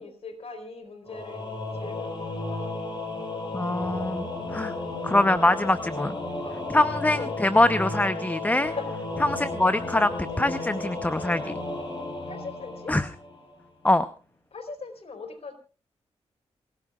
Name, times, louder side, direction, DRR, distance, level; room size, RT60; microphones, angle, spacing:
voice 1, 0.0-3.0 6.4-6.7 7.1-7.3 8.7-8.9 12.2-13.0 14.5-15.5, left 4 dB, 65° left, 7 dB, 4.1 m, -40 dB
Singing / Musical instrument, 1.1-13.5, left 2 dB, 45° left, 7.5 m, -33 dB
voice 2, 3.5-4.7 5.0-6.2 6.7-8.7 9.3-11.5 12.9-13.1 13.8-14.1, left 1 dB, 15° left, 12 dB, 0.8 m, -23 dB
28.5 x 15.5 x 2.4 m, 0.35 s
cardioid pair, 55°, 11 cm